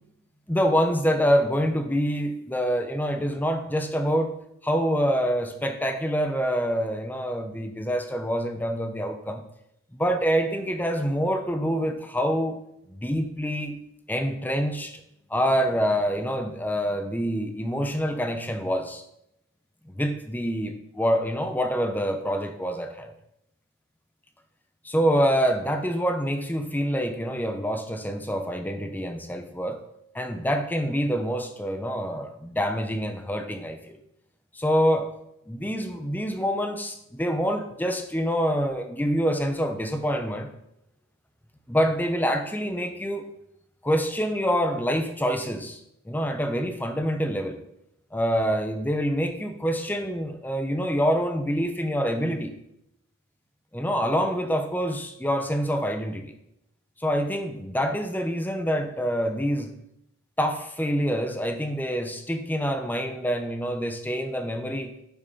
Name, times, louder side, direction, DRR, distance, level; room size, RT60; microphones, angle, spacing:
voice 1, 0.5-4.4 4.6-9.4 9.9-12.6 12.9-13.8 14.1-15.0 15.3-19.0 19.9-23.1 24.8-29.8 30.1-34.0 34.5-35.1 35.5-40.5 41.7-43.3 43.8-45.8 46.1-47.6 48.1-52.6 53.7-56.3 57.0-59.7 60.4-64.9, equal, 10° left, 6 dB, 0.9 m, -26 dB
11.0 x 5.9 x 5.5 m, 0.81 s
head